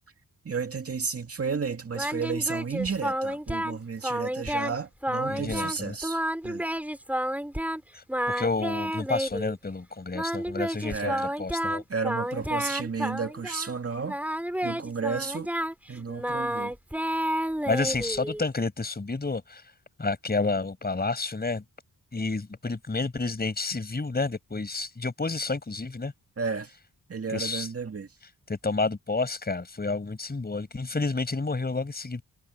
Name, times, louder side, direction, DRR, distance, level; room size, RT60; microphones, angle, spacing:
voice 1, 0.4-6.2 6.4-6.6 10.9-11.3 11.9-14.2 14.6-15.5 15.9-16.7 26.4-26.7 27.1-28.1, right 5 dB, 40° right, 2.3 m, -32 dB
Singing, 1.9-3.8 4.0-4.7 5.0-5.8 6.0-7.8 8.1-9.5 10.1-13.7 14.1-18.5, equal, 5° right, 5.9 m, -30 dB
voice 2, 5.3-5.9 7.9-11.1 11.4-11.8 17.7-19.7 20.0-21.6 22.1-26.1 27.3-27.7 28.5-32.2, left 3 dB, 25° left, 5.5 m, -30 dB
wide cardioid pair, 160°, 37 cm